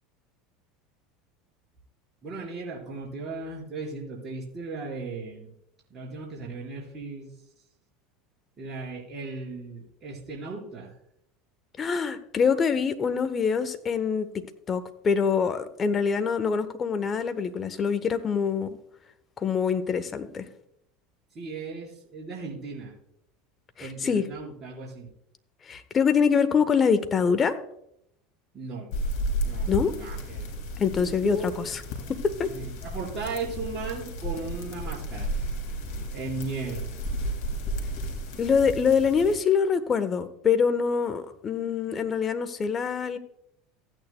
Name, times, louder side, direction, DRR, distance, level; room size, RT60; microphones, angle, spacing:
voice 1, 2.2-5.5 5.9-7.3 8.6-10.9 21.3-22.9 23.8-25.1 28.5-28.9 29.4-30.5 31.0-31.5 32.4-35.3 36.1-36.9, right 3 dB, 35° right, -3 dB, 4.6 m, -36 dB
voice 2, 11.8-14.3 14.7-18.8 19.4-20.4 23.8-24.3 25.6-27.5 29.7-29.9 30.8-31.8 32.1-32.5 38.4-43.2, left 6 dB, 35° left, 10 dB, 1.0 m, -25 dB
sound 1, 28.9-39.4, equal, 65° left, 3.0 m, -33 dB
15.5 x 9.1 x 2.2 m, 0.76 s
hypercardioid pair, 80°, 0 cm